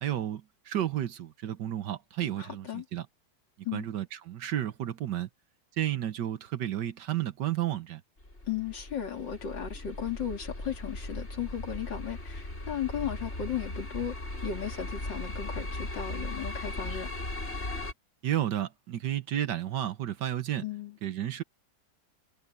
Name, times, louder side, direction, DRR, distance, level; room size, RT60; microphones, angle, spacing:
voice 1, 0.0-3.1 3.7-5.3 5.8-8.0 18.2-20.6 21.0-21.4, right 12 dB, 70° right, 1.5 m, -32 dB
voice 2, 2.4-2.9 3.7-3.9 8.5-14.1 14.4-17.1 20.6-21.0, left 9 dB, 70° left, 3.4 m, -35 dB
sound 1, 8.2-17.9, left 2 dB, 35° left, 5.9 m, -38 dB
omnidirectional pair, 2.0 m